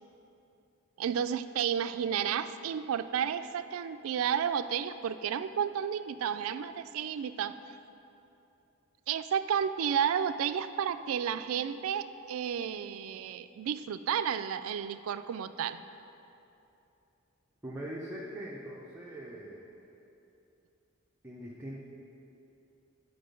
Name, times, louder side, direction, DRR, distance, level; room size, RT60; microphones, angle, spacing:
voice 1, 1.0-7.5 9.1-15.8, right 8 dB, 80° right, 13 dB, 0.3 m, -32 dB
voice 2, 17.6-19.6 21.2-21.8, right 1 dB, 10° right, -5 dB, 0.6 m, -41 dB
9.6 x 4.4 x 5.2 m, 2.8 s
head